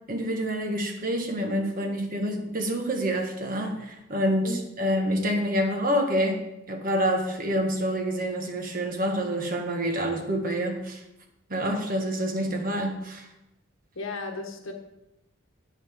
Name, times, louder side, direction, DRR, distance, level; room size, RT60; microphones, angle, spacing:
voice 1, 0.1-6.4 6.7-11.0 11.5-13.3, equal, 40° right, 3 dB, 1.5 m, -27 dB
voice 2, 13.9-14.7, left 2 dB, 70° left, 4 dB, 1.2 m, -34 dB
9.9 x 9.2 x 3.6 m, 0.89 s
head